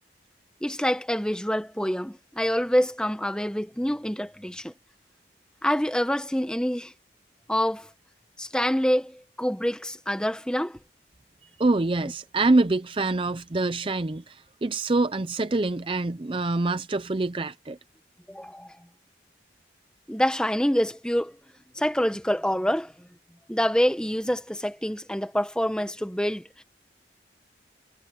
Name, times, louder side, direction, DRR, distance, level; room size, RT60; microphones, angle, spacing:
voice 1, 0.6-4.7 5.6-6.9 7.5-7.9 8.4-10.8 18.3-18.7 20.1-21.3 21.7-22.9 23.5-26.6, equal, 5° left, 1.1 m, -26 dB
voice 2, 11.6-17.8, right 2 dB, 30° right, 0.5 m, -25 dB
head